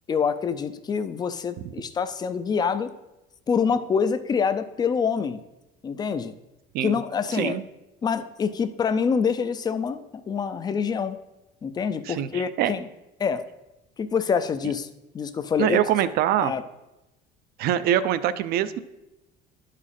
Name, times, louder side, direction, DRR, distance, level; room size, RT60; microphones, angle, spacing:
voice 1, 0.1-2.9 3.5-5.4 5.8-6.3 6.8-7.6 8.0-11.2 11.6-12.9 13.2-13.4 14.0-14.9 15.1-15.8 16.4-16.6, left 6 dB, 20° left, 13 dB, 0.4 m, -26 dB
voice 2, 7.3-7.6 12.0-12.7 15.6-16.5 17.6-18.8, right 11 dB, 60° right, 14 dB, 0.5 m, -24 dB
11.0 x 5.0 x 4.2 m, 0.96 s
cardioid pair, 140°, 18 cm